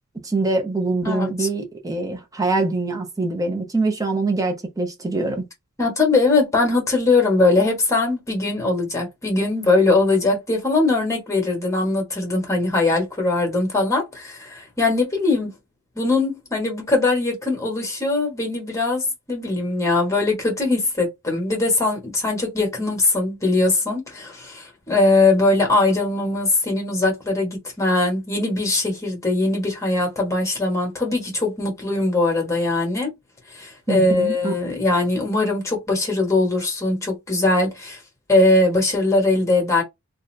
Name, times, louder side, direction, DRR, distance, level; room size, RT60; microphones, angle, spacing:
voice 1, 0.2-5.4 33.9-34.6, right 3 dB, 15° right, 0.7 m, -24 dB
voice 2, 1.0-1.5 5.8-15.5 15.9-33.1 33.5-38.0 38.3-39.8, left 2 dB, 15° left, 1.3 m, -21 dB
2.6 x 2.5 x 3.2 m
head